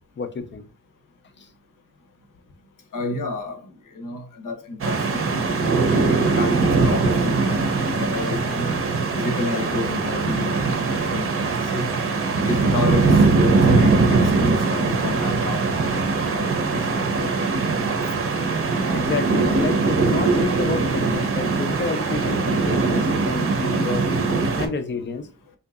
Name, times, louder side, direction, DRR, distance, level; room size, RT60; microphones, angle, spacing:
voice 1, 0.2-0.6 18.9-24.1 24.6-25.3, left 4 dB, 35° left, 0.4 m, -29 dB
voice 2, 2.9-3.6 3.9-8.7 9.2-10.6 10.9-11.9 12.5-15.7 16.1-17.8, left 3 dB, 70° left, 0.8 m, -31 dB
sound 1, 4.8-24.7, right 3 dB, 40° right, 0.7 m, -21 dB
3.6 x 2.8 x 2.3 m
wide cardioid pair, 140°, 34 cm